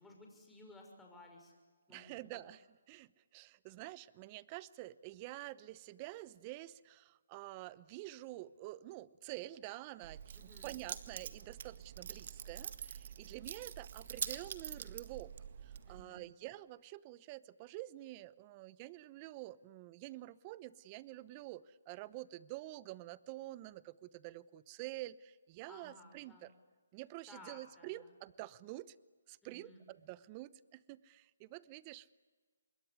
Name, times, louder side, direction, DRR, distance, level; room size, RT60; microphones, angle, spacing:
voice 1, 0.0-1.5 1.9-2.4 10.3-10.7 15.9-16.3 25.7-26.5 27.3-28.1 29.4-29.8, left 2 dB, 5° left, 1 dB, 6.0 m, -57 dB
voice 2, 1.9-2.6 2.9-15.3 15.6-26.5 26.9-29.0 29.3-32.1, right 17 dB, 25° right, 19 dB, 0.8 m, -48 dB
Keys jangling, 10.0-16.0, right 8 dB, 50° right, 1.8 m, -45 dB
26.5 x 22.5 x 9.7 m, 1.4 s
hypercardioid pair, 150°, 0 cm